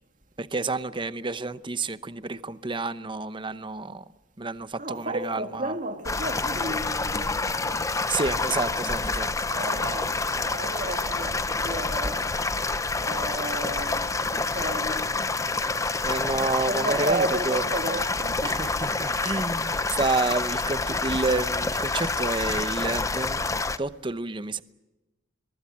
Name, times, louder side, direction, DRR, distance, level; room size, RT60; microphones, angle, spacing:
voice 1, 0.4-4.0 4.4-5.7 7.8-9.3 16.0-17.6 18.4-23.4 23.8-24.6, right 3 dB, 25° right, 0.8 m, -29 dB
voice 2, 4.8-8.1 9.5-10.1 10.4-12.2 13.0-15.1 16.7-19.3, right 2 dB, 45° right, 2.3 m, -33 dB
sound 1, 6.0-23.8, left 3 dB, 15° left, 0.7 m, -28 dB
23.5 x 22.0 x 7.6 m
head